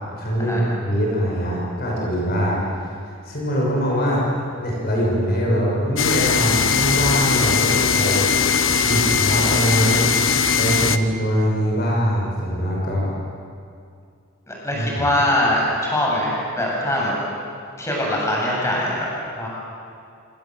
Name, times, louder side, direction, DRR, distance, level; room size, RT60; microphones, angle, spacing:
voice 1, 0.2-2.9 3.2-4.3 4.6-8.3 8.8-10.0 10.6-13.1 14.7-15.1, equal, 50° left, -3 dB, 6.6 m, -22 dB
sound 1, 6.0-11.0, left 6 dB, 65° left, 1.1 m, -19 dB
voice 2, 14.5-17.1 17.8-19.1 19.4-19.5, left 1 dB, 15° left, -4 dB, 7.9 m, -22 dB
27.5 x 27.0 x 7.8 m, 2.4 s
head